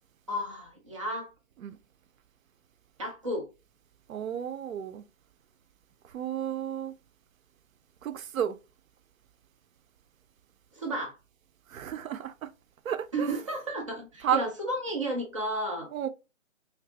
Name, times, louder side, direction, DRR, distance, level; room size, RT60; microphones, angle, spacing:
voice 1, 0.3-1.3 3.0-3.5 10.7-11.2 13.1-15.9, right 1 dB, 25° right, 0.5 m, -32 dB
voice 2, 4.1-5.0 6.1-6.9 8.0-8.6 11.7-12.5 12.9-13.3 14.2-14.4 15.9-16.1, right 9 dB, 80° right, 0.6 m, -32 dB
3.2 x 2.9 x 2.8 m
hypercardioid pair, 165°, 40 cm